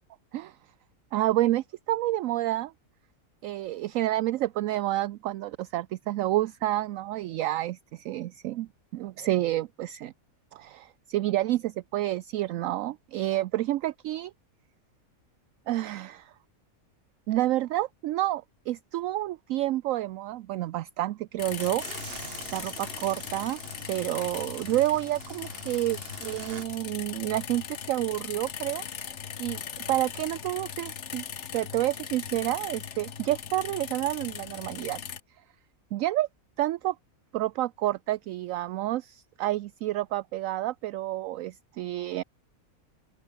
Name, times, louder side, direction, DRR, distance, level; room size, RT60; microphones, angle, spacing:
voice 1, 1.1-2.7 3.4-10.1 10.5-14.3 15.7-16.3 17.3-22.1 22.5-23.6 23.9-28.9 29.4-29.6 29.9-31.2 31.5-35.0 35.9-36.3 36.6-37.0 37.3-42.2, right 15 dB, 70° right, 0.9 m, -29 dB
sound 1, 21.4-35.2, left 7 dB, 55° left, 1.4 m, -39 dB
sound 2, 21.6-26.7, right 5 dB, 40° right, 1.8 m, -44 dB
open air
omnidirectional pair, 1.5 m